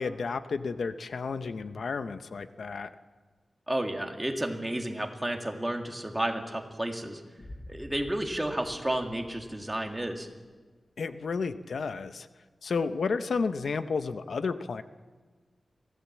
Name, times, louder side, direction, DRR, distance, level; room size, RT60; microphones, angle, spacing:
voice 1, 0.0-2.9 11.0-12.3 12.6-14.8, left 4 dB, 80° left, 11 dB, 0.7 m, -32 dB
voice 2, 3.7-7.2 7.7-10.3, right 1 dB, 10° right, 3 dB, 2.1 m, -32 dB
Boom, 7.4-10.3, left 1 dB, 25° left, 1.3 m, -49 dB
23.5 x 16.5 x 7.3 m, 1.4 s
wide cardioid pair, 130°, 0 cm